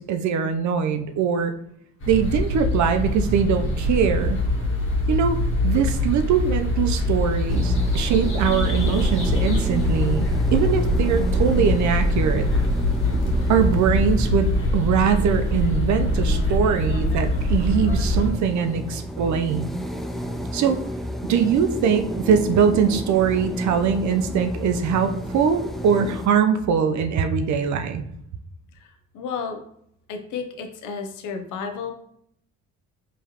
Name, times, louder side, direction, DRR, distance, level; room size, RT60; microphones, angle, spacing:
voice 1, 0.0-1.5 2.1-4.4 5.1-5.4 5.6-12.5 13.5-19.7 20.5-20.8 21.3-28.0, right 7 dB, 70° right, 7 dB, 0.6 m, -22 dB
sound 1, 2.0-18.3, left 1 dB, 40° left, 1.5 m, -23 dB
sound 2, 7.5-26.3, equal, ahead, 0.3 m, -32 dB
voice 2, 29.1-29.6 30.1-31.9, left 5 dB, 80° left, 6 dB, 0.6 m, -32 dB
4.7 x 3.1 x 2.9 m, 0.71 s
cardioid pair, 90°, 30 cm